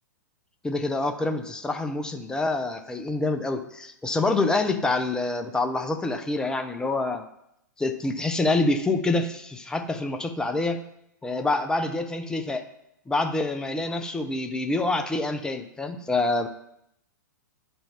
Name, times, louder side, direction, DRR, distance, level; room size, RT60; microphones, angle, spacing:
voice 1, 0.6-7.2 7.8-10.8 11.2-12.6 13.1-16.5, left 2 dB, 5° left, 7 dB, 0.7 m, -26 dB
10.0 x 5.5 x 4.4 m, 0.78 s
figure-of-eight pair, 110°, 10 cm